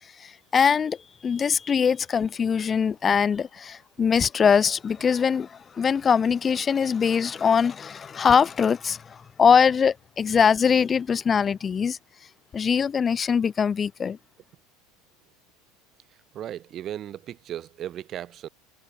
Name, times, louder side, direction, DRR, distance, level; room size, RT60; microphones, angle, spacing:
voice 1, 0.0-14.2, left 6 dB, 25° left, 0.4 m, -22 dB
voice 2, 16.3-18.5, right 11 dB, 40° right, 2.5 m, -36 dB
figure-of-eight pair, 75°, 0 cm